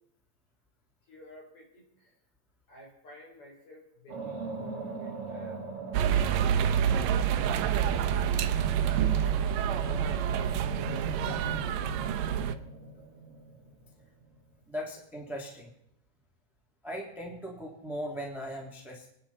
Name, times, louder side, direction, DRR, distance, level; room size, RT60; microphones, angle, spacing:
voice 1, 1.1-2.1 2.7-5.7 7.0-7.4 8.2-8.9 9.2-10.9, left 1 dB, 30° left, -1 dB, 4.8 m, -53 dB
sound 1, 4.1-14.2, right 3 dB, 40° right, 2.3 m, -40 dB
sound 2, 5.9-12.5, right 9 dB, 80° right, 2.0 m, -27 dB
voice 2, 14.7-15.7 16.8-19.1, equal, ahead, -1 dB, 1.6 m, -38 dB
29.0 x 10.5 x 4.3 m, 0.75 s
omnidirectional pair, 5.1 m